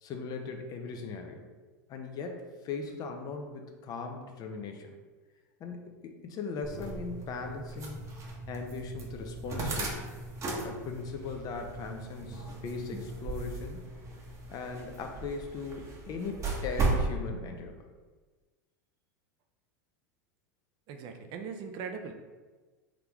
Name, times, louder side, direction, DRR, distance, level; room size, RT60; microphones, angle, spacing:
voice 1, 0.0-1.4 1.9-4.9 5.6-8.0 8.5-10.1 10.6-13.8 14.5-17.9, left 4 dB, 40° left, 4 dB, 0.6 m, -39 dB
sound 1, 6.6-17.1, right 3 dB, 30° right, 0.9 m, -36 dB
voice 2, 20.9-22.1, right 6 dB, 50° right, 5 dB, 0.5 m, -40 dB
3.7 x 3.4 x 3.0 m, 1.3 s
hypercardioid pair, 100°, 10 cm